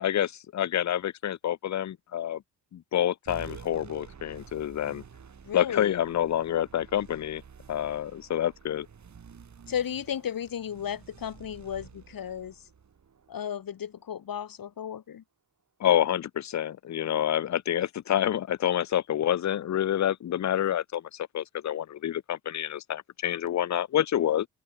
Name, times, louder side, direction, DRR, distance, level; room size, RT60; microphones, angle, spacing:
voice 1, 0.0-2.4 2.7-5.0 5.5-7.4 7.7-8.9 15.8-24.5, left 11 dB, 50° left, 0.7 m, -28 dB
sound 1, 3.3-14.1, right 6 dB, 50° right, 4.3 m, -50 dB
voice 2, 5.4-6.0 9.7-12.6 13.3-15.2, left 9 dB, 65° left, 2.6 m, -34 dB
open air
cardioid pair, 105°, 37 cm